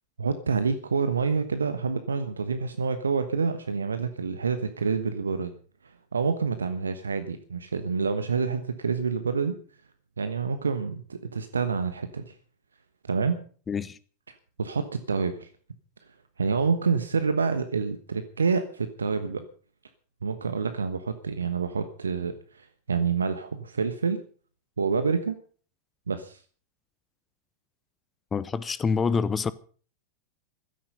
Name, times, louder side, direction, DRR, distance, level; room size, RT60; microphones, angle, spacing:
voice 1, 0.2-5.5 5.8-9.5 10.2-12.3 13.1-13.4 14.6-15.5 16.4-19.4 20.2-24.2 24.8-25.4 26.1-26.4, right 5 dB, 75° right, 1.2 m, -27 dB
voice 2, 13.7-14.0 28.3-29.5, left 5 dB, 20° left, 0.7 m, -26 dB
16.0 x 13.0 x 5.4 m
figure-of-eight pair, 90°, 0 cm